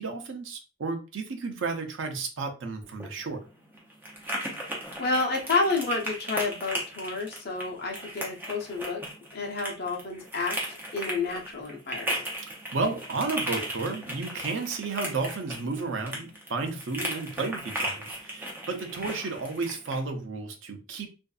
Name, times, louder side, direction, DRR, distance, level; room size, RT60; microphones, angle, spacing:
voice 1, 0.0-3.5 12.7-21.1, right 3 dB, 75° right, 0.6 m, -32 dB
sound 1, 2.8-20.0, right 1 dB, 10° right, 0.6 m, -36 dB
voice 2, 4.5-9.0 9.3-12.2, left 3 dB, 55° left, 0.7 m, -30 dB
2.5 x 2.3 x 2.3 m
head